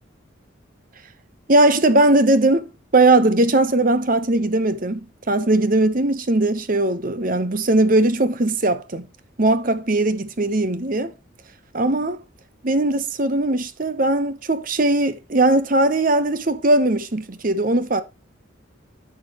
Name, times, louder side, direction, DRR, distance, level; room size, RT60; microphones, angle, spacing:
voice 1, 1.5-9.1 9.4-11.1 11.7-12.2 12.6-18.0, right 2 dB, 40° right, 0.9 m, -19 dB
11.0 x 7.2 x 3.0 m
head